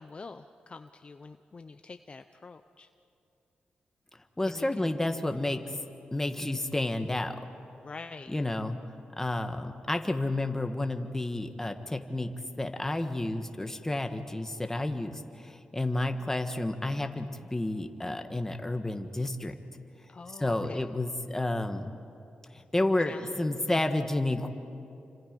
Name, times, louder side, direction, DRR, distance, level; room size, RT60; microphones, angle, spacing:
voice 1, 0.0-2.9 4.4-4.9 6.4-6.6 7.8-8.3 20.1-20.8 22.8-23.8, left 4 dB, 35° left, 8 dB, 0.7 m, -46 dB
voice 2, 4.4-5.6 6.1-7.4 8.3-8.8 9.2-12.3 12.6-19.5 20.4-21.9 22.5-24.5, left 2 dB, 15° left, 6 dB, 1.6 m, -30 dB
29.5 x 25.5 x 5.3 m, 2.8 s
cardioid pair, 95°, 3 cm